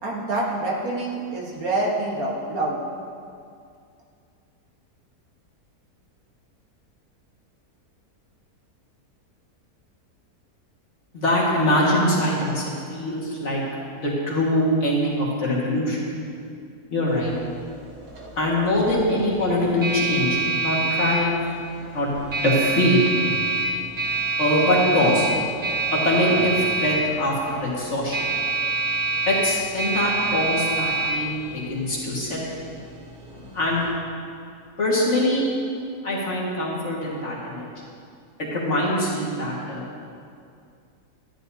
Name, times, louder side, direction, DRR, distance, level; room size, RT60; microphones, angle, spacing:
voice 1, 0.0-2.8, right 2 dB, 65° right, -4 dB, 1.8 m, -26 dB
voice 2, 11.1-13.6 14.0-16.0 16.9-17.3 18.4-21.4 21.9-22.1 22.4-23.0 24.4-25.3 25.9-28.3 29.3-32.4 33.3-33.8 34.8-35.5 36.0-37.7 38.4-39.8, left 1 dB, 50° left, -5 dB, 2.1 m, -23 dB
sound 1, 17.1-33.9, right 3 dB, 85° right, 2.0 m, -27 dB
13.0 x 10.0 x 2.8 m, 2.4 s
omnidirectional pair, 1.7 m